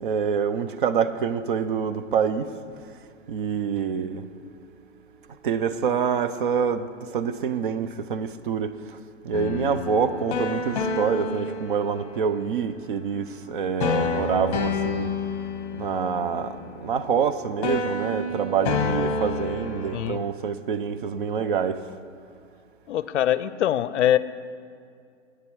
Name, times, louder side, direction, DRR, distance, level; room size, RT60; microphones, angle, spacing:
voice 1, 0.0-2.5 3.3-4.3 5.4-9.0 9.2-15.1 15.7-21.8, right 6 dB, 45° right, 0.5 m, -26 dB
sound 1, 9.3-12.5 13.8-17.3 17.6-20.1, left 4 dB, 30° left, 1.0 m, -29 dB
voice 2, 22.9-24.2, left 11 dB, 65° left, 0.5 m, -23 dB
10.5 x 8.7 x 4.6 m
hypercardioid pair, 160°, 37 cm